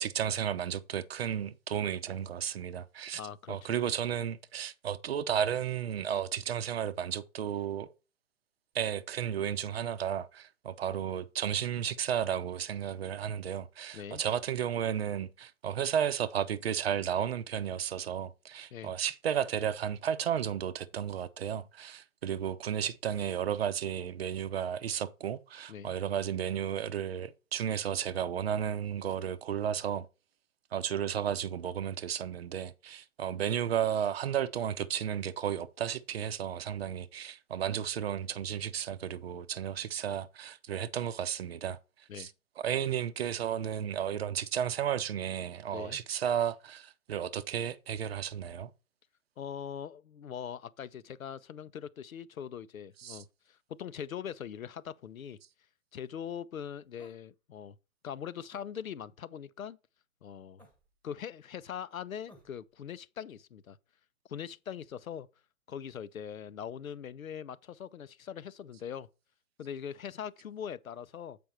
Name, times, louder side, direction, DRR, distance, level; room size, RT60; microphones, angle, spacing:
voice 1, 0.0-3.2 3.5-7.9 8.7-30.0 30.7-41.8 42.1-42.3 42.6-48.7 53.0-53.2, right 9 dB, 45° right, 0.7 m, -33 dB
voice 2, 3.1-3.7 13.9-14.2 18.7-18.9 25.7-25.9 42.1-42.3 45.7-46.0 49.4-55.4 55.9-57.8 58.0-59.8 60.2-60.6 61.0-63.8 64.3-65.3 65.7-69.1 69.6-71.4, left 8 dB, 70° left, 0.7 m, -42 dB
sound 1, 57.0-57.3 58.5-58.7 60.6-61.0 62.3-62.6, equal, 5° left, 1.3 m, -58 dB
7.7 x 5.2 x 4.3 m
figure-of-eight pair, 130°, 42 cm